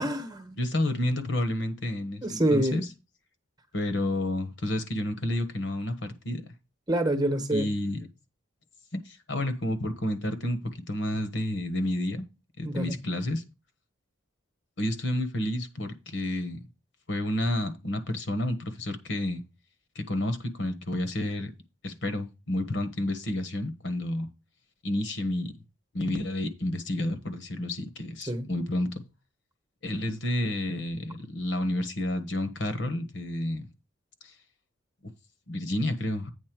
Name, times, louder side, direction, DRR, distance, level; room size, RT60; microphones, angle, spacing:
voice 1, 0.0-0.6 2.2-2.8 6.9-7.7 12.6-13.0 28.2-28.5, right 1 dB, 20° right, 1.1 m, -27 dB
voice 2, 0.6-2.8 3.7-6.4 7.5-8.0 8.9-10.6 10.9-12.3 12.6-13.4 14.8-16.6 17.1-19.4 19.9-21.5 21.8-24.3 24.8-25.5 25.9-28.9 29.8-33.7 34.2-34.3 35.0-35.1 35.5-36.3, left 1 dB, 60° left, 1.4 m, -30 dB
8.7 x 4.2 x 6.1 m
head